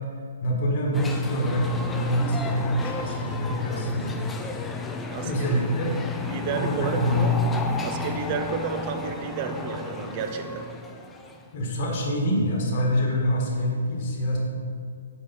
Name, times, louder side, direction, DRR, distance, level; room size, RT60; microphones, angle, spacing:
voice 1, 0.4-4.2 5.2-6.0 6.5-7.3 11.5-14.4, equal, 45° left, -2 dB, 1.7 m, -25 dB
sound 1, 0.9-11.5, left 3 dB, 10° left, 0.5 m, -33 dB
voice 2, 6.2-7.4 7.8-10.7, right 6 dB, 35° right, 7 dB, 0.6 m, -31 dB
6.7 x 4.7 x 5.5 m, 2.3 s
hypercardioid pair, 135°, 0 cm